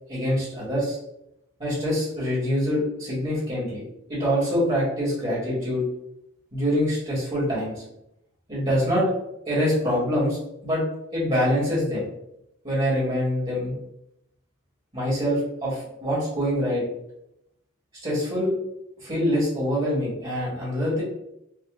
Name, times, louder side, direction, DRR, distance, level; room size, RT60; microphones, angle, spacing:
voice 1, 0.1-1.0 1.6-3.8 4.1-5.8 6.5-7.8 8.5-9.1 9.5-10.8 11.1-12.1 12.6-13.8 14.9-16.8 17.9-18.5 19.0-21.0, equal, 30° right, -7 dB, 1.4 m, -25 dB
4.9 x 2.3 x 2.4 m, 0.81 s
head